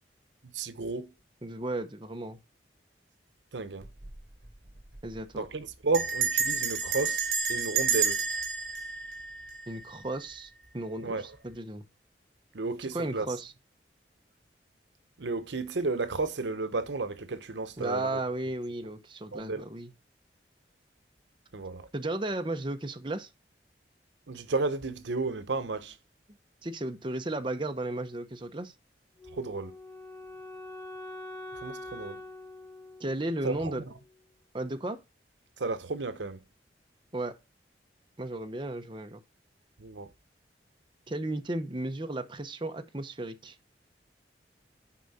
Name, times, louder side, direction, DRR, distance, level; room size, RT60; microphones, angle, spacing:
voice 1, 0.5-1.1 3.5-3.9 5.3-8.2 11.0-11.3 12.5-13.3 15.2-18.2 19.3-19.6 21.5-21.9 24.3-26.0 29.3-29.7 31.5-32.2 33.4-33.9 35.6-36.4 39.8-40.1, right 3 dB, 85° right, 0.8 m, -33 dB
voice 2, 1.4-2.4 5.0-5.5 9.7-11.8 12.8-13.5 17.8-19.9 21.9-23.3 26.6-28.7 33.0-33.8 34.5-35.0 37.1-37.4 38.2-39.2 41.1-43.6, right 2 dB, 25° right, 0.8 m, -34 dB
Bell, 3.8-4.2 4.5-4.6 4.8-5.2 5.9-10.0, right 6 dB, 65° right, 3.5 m, -30 dB
Wind instrument woodwind instrument, 29.2-34.2, left 2 dB, 10° left, 3.0 m, -45 dB
10.0 x 4.9 x 4.1 m
head